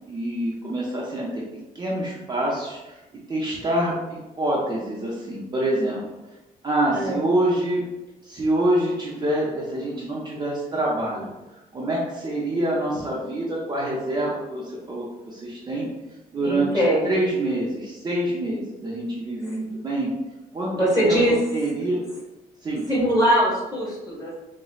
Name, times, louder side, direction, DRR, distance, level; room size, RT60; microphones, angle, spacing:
voice 1, 0.1-1.4 1.7-3.0 3.3-6.0 6.6-7.8 8.2-11.3 11.7-15.9 16.3-16.7 17.0-20.1 20.5-20.7 21.0-21.2 21.5-22.0 22.6-22.8, right 1 dB, 25° right, -5 dB, 0.5 m, -26 dB
voice 2, 16.4-17.1 19.4-19.6 20.7-21.3 22.9-24.3, equal, 20° left, -6 dB, 1.4 m, -21 dB
4.0 x 2.0 x 2.3 m, 1.0 s
cardioid pair, 140°, 16 cm